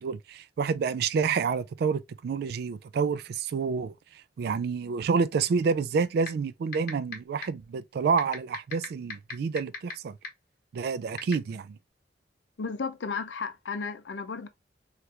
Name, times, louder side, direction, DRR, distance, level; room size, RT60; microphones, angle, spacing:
voice 1, 0.0-3.9 4.4-10.2 10.7-11.8, right 5 dB, 60° right, 0.3 m, -28 dB
sound 1, 6.3-6.4 6.7-7.1 7.4-7.5 8.2-9.9 10.2-10.3 11.2-11.3, left 6 dB, 55° left, 0.9 m, -33 dB
voice 2, 12.6-14.5, left 5 dB, 85° left, 0.5 m, -34 dB
3.2 x 2.4 x 2.7 m
head